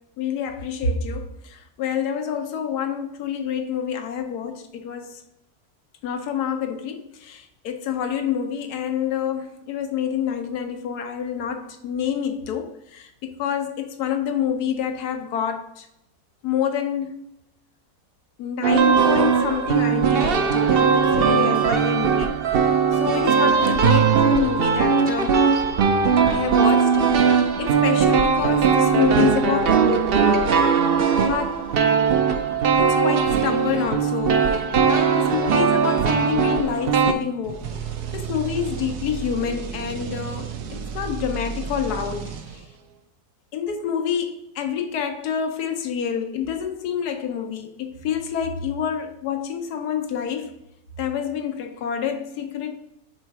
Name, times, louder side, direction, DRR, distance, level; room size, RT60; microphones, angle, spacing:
voice 1, 0.2-5.2 6.0-15.9 16.4-17.2 18.4-22.3 22.9-25.4 26.3-30.1 30.4-30.6 31.3-31.7 32.8-34.6 35.1-42.6 43.5-50.5 51.0-52.7, left 8 dB, 90° left, 1.3 m, -27 dB
sound 1, 18.6-37.1, right 6 dB, 60° right, 0.6 m, -19 dB
sound 2, 37.4-42.9, right 6 dB, 90° right, 1.3 m, -33 dB
5.5 x 4.0 x 4.6 m
omnidirectional pair, 1.6 m